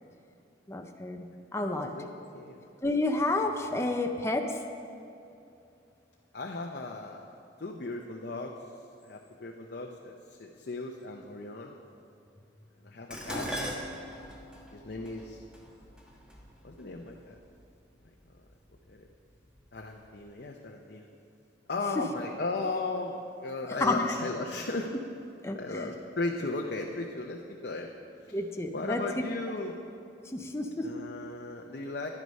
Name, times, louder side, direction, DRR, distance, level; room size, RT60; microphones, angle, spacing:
voice 1, 0.7-1.9 2.8-4.6 23.8-24.1 25.4-25.9 28.3-29.0 30.3-30.9, left 2 dB, 15° left, 3 dB, 0.5 m, -30 dB
voice 2, 6.3-7.3 7.6-8.5 9.0-11.8 12.8-13.5 14.0-14.2 14.7-15.4 16.6-17.4 18.9-19.1 19.7-21.1 21.7-24.9 25.5-27.9 28.2-28.4 28.7-29.8 30.8-32.1, left 3 dB, 55° left, 1 dB, 0.6 m, -36 dB
Dishes pots and pans, 13.1-17.5 18.4-18.8 19.1-20.0 20.2-20.3, equal, 5° right, 1.1 m, -40 dB
11.0 x 9.5 x 5.4 m, 2.7 s
head